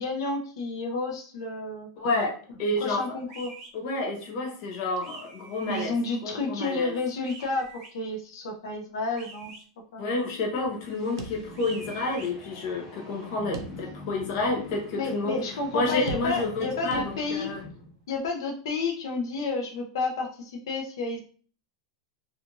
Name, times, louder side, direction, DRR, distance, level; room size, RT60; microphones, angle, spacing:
voice 1, 0.0-1.9 2.8-3.5 5.7-9.5 9.9-10.0 15.0-17.5 18.1-21.2, left 3 dB, 85° left, 1 dB, 0.6 m, -31 dB
voice 2, 2.0-3.2 3.7-5.9 6.2-7.0 10.0-15.4 15.7-17.6, left 2 dB, 45° left, 1 dB, 0.7 m, -29 dB
sound 1, 3.3-3.7 5.0-5.9 7.2-7.9 9.1-9.6 11.5-12.3, right 3 dB, 30° right, 0.7 m, -45 dB
sound 2, 10.3-18.1, left 2 dB, 20° left, 0.9 m, -45 dB
sound 3, 11.2-12.0 12.4-12.5 13.5-14.2 14.7-14.8 16.1-16.6 16.9-17.6, right 4 dB, 75° right, 0.5 m, -40 dB
2.9 x 2.4 x 2.5 m, 0.43 s
supercardioid pair, 165°, 2 cm